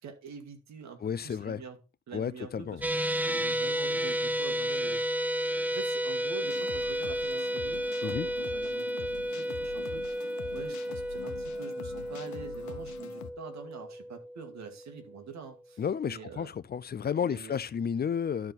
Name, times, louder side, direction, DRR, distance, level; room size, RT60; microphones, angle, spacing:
voice 1, 0.0-1.8 2.1-5.3 5.7-16.5 17.2-17.5, right 6 dB, 65° right, 2.1 m, -46 dB
voice 2, 1.0-1.6 2.1-2.8 8.0-8.3 15.8-18.5, left 7 dB, 30° left, 0.5 m, -32 dB
sound 1, 2.8-15.2, equal, 5° right, 0.9 m, -32 dB
sound 2, 6.4-13.3, left 10 dB, 70° left, 1.0 m, -45 dB
12.0 x 4.4 x 4.1 m
cardioid pair, 90°, 30 cm